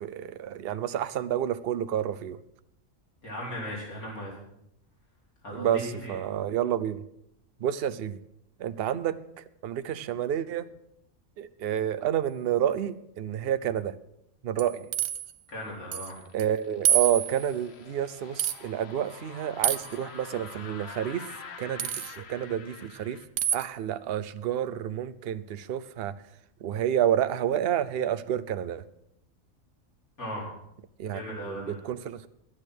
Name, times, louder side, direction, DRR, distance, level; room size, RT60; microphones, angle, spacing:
voice 1, 0.0-2.4 5.5-7.0 7.6-8.2 8.6-9.2 9.6-10.7 11.4-13.9 14.4-14.9 16.3-21.3 21.6-23.2 23.5-26.2 26.6-28.8 31.0-32.2, right 10 dB, 55° right, 14 dB, 0.7 m, -29 dB
voice 2, 3.2-4.4 5.4-6.2 15.5-16.2 30.2-30.5 31.1-31.7, equal, 90° left, -4 dB, 4.6 m, -37 dB
sound 1, 14.6-15.3 15.9-16.1 16.4-16.5 16.9-17.5 18.4-18.6 19.6-20.0 21.8-22.2 23.4-23.7, right 10 dB, 80° right, 1.2 m, -27 dB
sound 2, 15.5-23.3, left 5 dB, 50° left, 1.2 m, -47 dB
12.0 x 9.8 x 6.3 m, 0.78 s
omnidirectional pair, 1.5 m